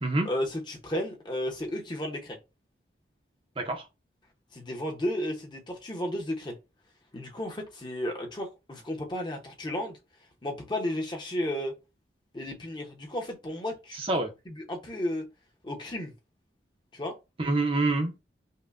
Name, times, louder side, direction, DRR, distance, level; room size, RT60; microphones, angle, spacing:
voice 1, 0.2-2.4 4.5-6.5 7.1-10.0 10.4-11.7 12.3-14.0 14.5-15.2 15.6-16.1 16.9-17.1, left 1 dB, 25° left, 0.7 m, -33 dB
voice 2, 13.9-14.3 17.4-18.2, right 2 dB, 30° right, 0.6 m, -26 dB
5.3 x 2.1 x 2.4 m
head